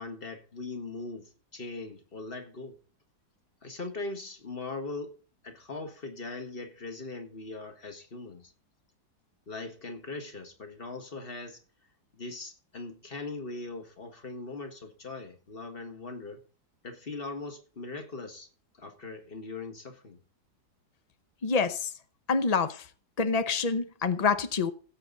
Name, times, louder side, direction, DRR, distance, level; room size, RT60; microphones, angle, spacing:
voice 1, 0.0-2.8 3.6-5.2 5.4-8.5 9.5-11.6 12.1-16.4 16.8-18.5 18.8-20.2, left 3 dB, 30° left, 1.8 m, -40 dB
voice 2, 21.4-21.9 22.3-22.9 23.2-24.7, left 5 dB, 85° left, 0.3 m, -27 dB
16.5 x 7.9 x 3.9 m
omnidirectional pair, 2.1 m